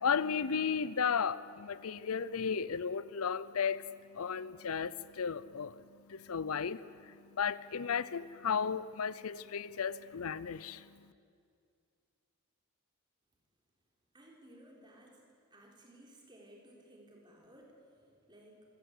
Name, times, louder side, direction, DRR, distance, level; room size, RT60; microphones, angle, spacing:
voice 1, 0.0-11.1, left 6 dB, 80° left, 17 dB, 0.6 m, -35 dB
voice 2, 14.1-15.2 15.5-18.7, right 1 dB, 20° right, -1 dB, 4.2 m, -58 dB
25.5 x 17.0 x 8.4 m, 2.3 s
head